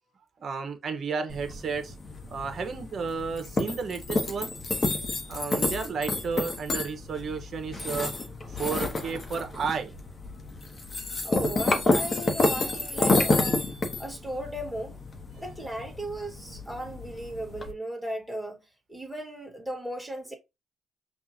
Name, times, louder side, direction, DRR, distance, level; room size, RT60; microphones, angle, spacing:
voice 1, 0.4-1.9 2.3-4.5 5.3-8.1 8.5-9.9 12.6-12.8, right 5 dB, 50° right, 1.2 m, -32 dB
sound 1, 1.3-17.7, left 2 dB, 35° left, 1.0 m, -30 dB
voice 2, 11.2-13.6 14.0-15.0 15.4-18.6 18.9-20.3, right 1 dB, 5° right, 1.7 m, -36 dB
5.8 x 2.5 x 2.8 m
cardioid pair, 90°, 0 cm